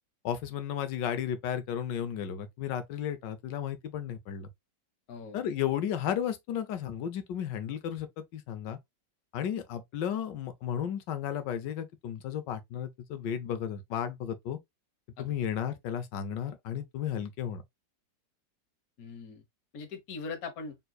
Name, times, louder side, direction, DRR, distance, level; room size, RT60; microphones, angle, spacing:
voice 1, 0.2-4.5 5.3-8.8 9.3-14.6 15.2-17.6, left 9 dB, 75° left, 1.4 m, -34 dB
voice 2, 5.1-5.4 15.2-15.3 19.0-19.4 19.7-20.8, left 4 dB, 55° left, 1.5 m, -41 dB
4.4 x 3.9 x 2.3 m
omnidirectional pair, 2.0 m